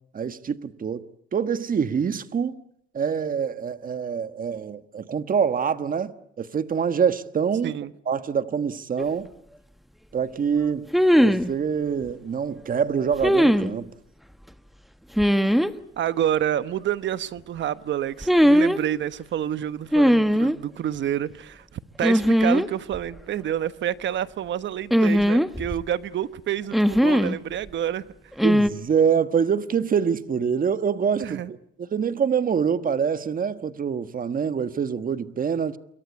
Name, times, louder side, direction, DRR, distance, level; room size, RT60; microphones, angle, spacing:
voice 1, 0.1-2.6 2.9-7.8 8.1-9.3 10.1-10.9 11.2-13.9 28.4-35.8, right 7 dB, 45° right, 1.4 m, -25 dB
sound 1, 9.0-9.1 10.9-11.5 13.2-13.7 15.2-15.7 18.2-18.8 19.9-20.6 22.0-22.7 22.9-23.0 24.9-25.8 26.7-27.4 28.4-28.7, equal, ahead, 1.3 m, -19 dB
voice 2, 16.0-28.0 31.2-31.5, right 10 dB, 65° right, 1.1 m, -28 dB
28.5 x 23.5 x 8.2 m
cardioid pair, 90°, 20 cm